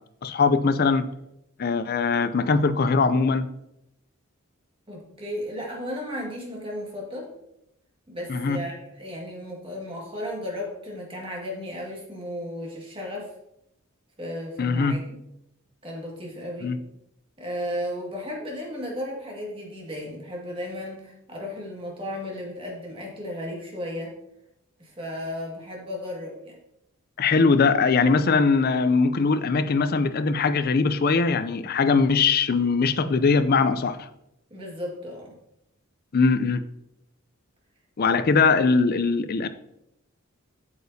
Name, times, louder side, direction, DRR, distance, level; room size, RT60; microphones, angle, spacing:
voice 1, 0.2-1.1 1.6-3.5 8.3-8.6 14.6-15.0 16.6-16.8 27.2-34.1 36.1-36.6 38.0-39.5, left 4 dB, 45° left, 0.4 m, -21 dB
voice 2, 4.9-7.3 8.1-13.3 14.2-15.2 15.8-16.7 17.4-24.1 24.8-26.6 34.5-35.4, left 1 dB, 25° right, 1.9 m, -34 dB
8.3 x 6.7 x 2.7 m
head